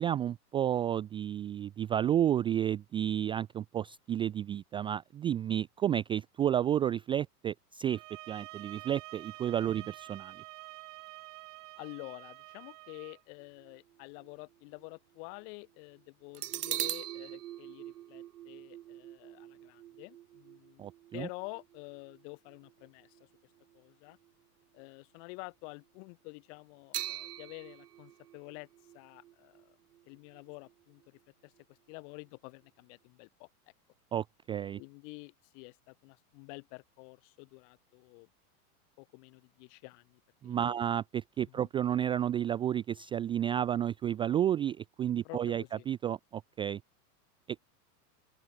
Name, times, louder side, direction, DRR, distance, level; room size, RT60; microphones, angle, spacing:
voice 1, 0.0-8.0 8.3-10.3 20.8-21.3 34.1-34.8 40.4-46.8, right 10 dB, 10° right, 0.4 m, -31 dB
sound 1, 7.9-13.2, right 24 dB, 55° right, 2.5 m, -48 dB
voice 2, 11.8-20.8 21.1-23.2 23.7-24.2 24.7-28.7 28.9-29.8 30.1-31.5 31.9-33.5 34.8-38.3 39.0-40.8 41.4-41.7 45.2-45.9, left 37 dB, 50° left, 4.0 m, -49 dB
sound 2, 13.4-14.9 15.4-15.5 16.3-23.8 24.1-24.3 26.9-30.7 31.0-31.1, right 13 dB, 75° right, 6.4 m, -43 dB
open air
hypercardioid pair, 135°, 47 cm